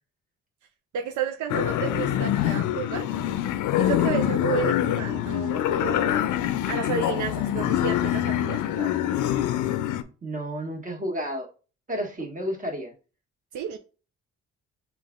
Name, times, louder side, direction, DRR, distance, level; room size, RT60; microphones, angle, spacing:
voice 1, 0.9-3.1 3.8-6.3 6.7-8.9 13.5-13.8, right 7 dB, 75° right, 0.5 m, -31 dB
sound 1, 1.5-10.0, left 12 dB, 80° left, 0.5 m, -25 dB
voice 2, 10.2-11.5 11.9-12.9, equal, 25° right, 1.5 m, -31 dB
5.2 x 2.5 x 3.7 m
cardioid pair, 90°, 30 cm